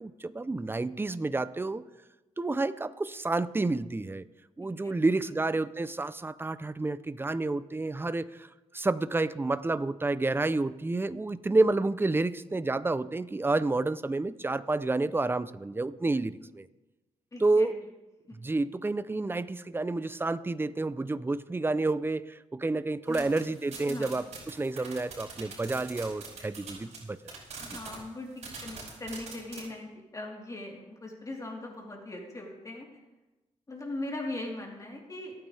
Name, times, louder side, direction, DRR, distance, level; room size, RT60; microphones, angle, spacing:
voice 1, 0.0-1.8 2.4-4.2 4.6-8.5 8.7-16.7 17.4-17.7 18.4-27.2 27.7-27.8, right 2 dB, 20° right, 15 dB, 0.6 m, -29 dB
voice 2, 4.6-4.9 5.2-5.3 17.3-17.7 18.3-18.4 23.1-23.4 23.9-24.1 27.6-32.9 33.7-35.3, left 2 dB, 30° left, -2 dB, 3.8 m, -40 dB
sound 1, 23.1-27.0 27.3-28.0 28.4-29.6, right 5 dB, 70° right, 5.5 m, -43 dB
27.0 x 9.2 x 3.5 m, 1.1 s
cardioid pair, 90°, 12 cm